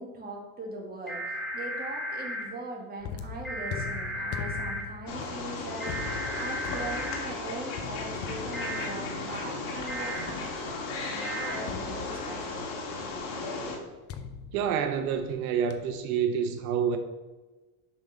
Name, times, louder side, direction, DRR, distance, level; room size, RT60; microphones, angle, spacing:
voice 1, 0.0-12.7, right 2 dB, 20° right, 1.7 m, -41 dB
sound 1, 1.1-2.4 3.4-4.8 5.8-7.2 8.5-8.9 9.9-10.2 11.2-11.6, equal, ahead, 1.8 m, -35 dB
sound 2, 3.0-10.9 11.7-12.7 14.1-15.4 15.7-16.0, left 6 dB, 35° left, 0.6 m, -41 dB
Wild animals, 5.1-13.8, left 3 dB, 55° left, 1.8 m, -35 dB
voice 2, 14.5-17.0, right 7 dB, 90° right, 0.7 m, -28 dB
7.0 x 3.8 x 5.4 m
supercardioid pair, 120°, 41 cm